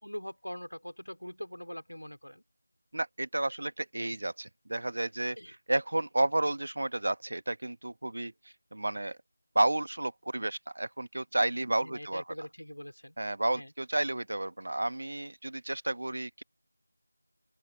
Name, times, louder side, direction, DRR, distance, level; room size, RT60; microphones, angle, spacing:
voice 1, 0.0-2.4 5.4-5.5 11.8-13.2 13.5-13.7, equal, 85° left, 3.9 m, -42 dB
voice 2, 2.9-8.3 8.7-9.2 9.5-12.2 13.2-16.4, right 1 dB, 50° right, 1.2 m, -31 dB
open air
figure-of-eight pair, 170°, 0 cm